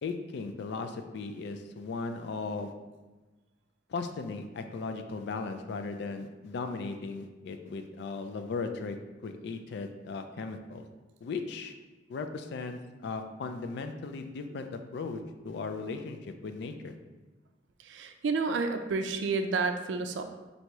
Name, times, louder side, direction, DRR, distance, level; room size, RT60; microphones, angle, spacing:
voice 1, 0.0-2.7 3.9-9.0 9.2-10.9 11.2-11.7 12.1-16.9, left 4 dB, 65° left, 7 dB, 0.3 m, -37 dB
voice 2, 17.8-20.2, right 4 dB, 75° right, 7 dB, 0.4 m, -30 dB
4.5 x 2.7 x 3.0 m, 1.2 s
head